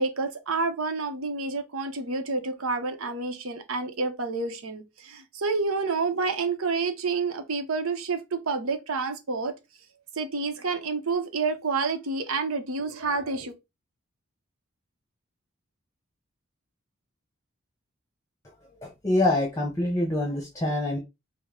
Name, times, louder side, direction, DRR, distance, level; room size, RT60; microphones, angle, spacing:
voice 1, 0.0-9.5 10.1-13.5, right 4 dB, 85° right, 0.8 m, -29 dB
voice 2, 18.8-21.0, left 1 dB, 15° left, 0.8 m, -25 dB
5.1 x 2.1 x 3.6 m
head